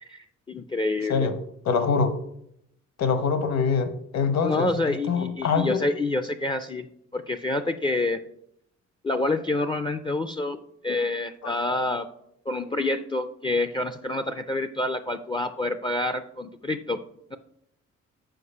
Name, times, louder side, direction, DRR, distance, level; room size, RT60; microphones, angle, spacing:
voice 1, 0.0-1.3 4.4-6.9 7.1-8.2 9.0-12.1 12.5-17.0 17.3-17.4, left 2 dB, 15° left, 10 dB, 0.4 m, -27 dB
voice 2, 1.7-2.1 3.0-5.8 11.4-11.5, left 5 dB, 60° left, 9 dB, 1.0 m, -24 dB
6.6 x 4.7 x 5.6 m, 0.74 s
cardioid pair, 90°, 30 cm